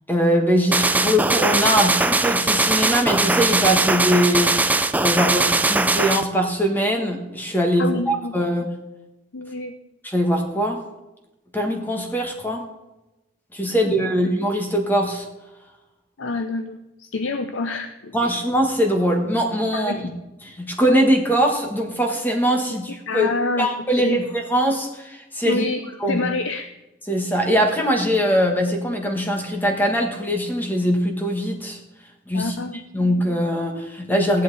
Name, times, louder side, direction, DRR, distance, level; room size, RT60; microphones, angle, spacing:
voice 1, 0.1-4.5 5.0-8.7 10.0-10.8 11.5-12.6 13.5-15.2 18.1-20.1 20.6-23.3 23.6-25.7 26.0-26.2 27.1-31.8 32.3-32.5 32.9-34.4, equal, 10° left, 2 dB, 1.5 m, -21 dB
sound 1, 0.7-6.2, right 3 dB, 10° right, 0.4 m, -20 dB
voice 2, 7.8-8.3 9.3-9.7 13.6-13.9 16.2-18.3 19.7-20.0 22.7-22.8 23.1-24.2 25.4-25.8 26.1-26.7 32.3-33.2, left 3 dB, 85° left, 8 dB, 0.7 m, -28 dB
15.0 x 10.5 x 4.2 m, 1.0 s
head